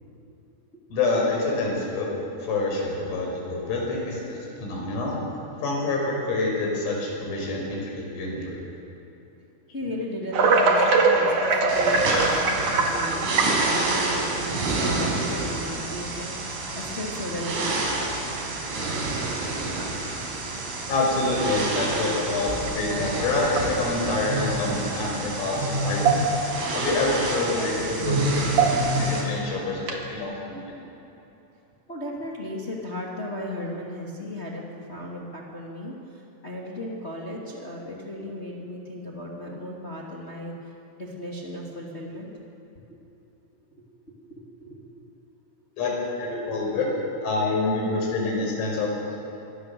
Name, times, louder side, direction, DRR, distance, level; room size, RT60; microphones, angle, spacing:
voice 1, 0.9-2.1 2.4-5.2 5.6-8.6 20.9-26.3 26.7-28.2 28.8-30.8 45.8-45.9 46.2-46.9 47.2-48.9, left 2 dB, 85° left, -1 dB, 7.9 m, -27 dB
voice 2, 9.7-18.0 31.9-40.5 41.0-42.3 44.6-45.0, left 1 dB, 40° left, -2 dB, 0.9 m, -35 dB
sound 1, 10.3-14.2 15.0-15.1 16.1-16.2 16.9-17.3 17.7-17.8 18.3-18.4 19.8-19.9 22.7-22.8 23.5-24.1 25.5-25.6 26.0-26.6 26.9-27.0 28.4-29.1 29.8-30.1, right 4 dB, 50° right, 2.7 m, -23 dB
sound 2, 11.7-29.2, right 2 dB, 90° right, 7.1 m, -28 dB
24.5 x 24.0 x 6.9 m, 3.0 s
omnidirectional pair, 5.8 m